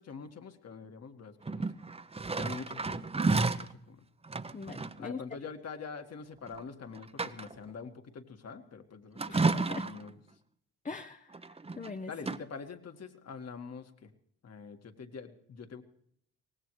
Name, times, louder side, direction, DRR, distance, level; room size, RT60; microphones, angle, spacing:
voice 1, 0.0-1.7 2.4-3.1 3.4-4.1 5.0-10.2 12.1-14.1 14.4-15.8, left 5 dB, 45° left, 7 dB, 2.0 m, -45 dB
sound 1, 1.4-3.7 4.2-5.0 6.5-6.6 7.0-7.7 9.2-10.1 11.3-11.9 12.2-12.4, right 3 dB, 15° right, 0.9 m, -31 dB
voice 2, 4.5-5.2 9.3-9.8 10.8-11.3 11.8-12.1, left 4 dB, 20° left, 8 dB, 0.8 m, -41 dB
23.5 x 18.5 x 3.2 m, 0.68 s
hypercardioid pair, 55°, 35 cm